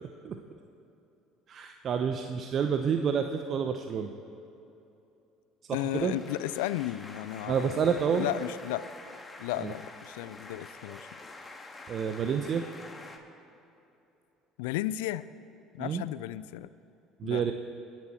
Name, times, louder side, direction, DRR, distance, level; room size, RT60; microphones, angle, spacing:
voice 1, 1.5-4.1 5.7-6.1 7.5-8.3 9.6-9.7 11.9-12.7 15.8-16.0 17.2-17.5, right 7 dB, 45° right, 6 dB, 0.9 m, -29 dB
voice 2, 5.7-8.9 9.4-11.2 14.6-15.2 15.7-16.7 17.2-17.5, left 15 dB, 75° left, 17 dB, 0.4 m, -34 dB
sound 1, 5.8-13.2, left 2 dB, 20° left, 2.1 m, -47 dB
29.5 x 10.5 x 4.5 m, 2.9 s
hypercardioid pair, 60°, 0 cm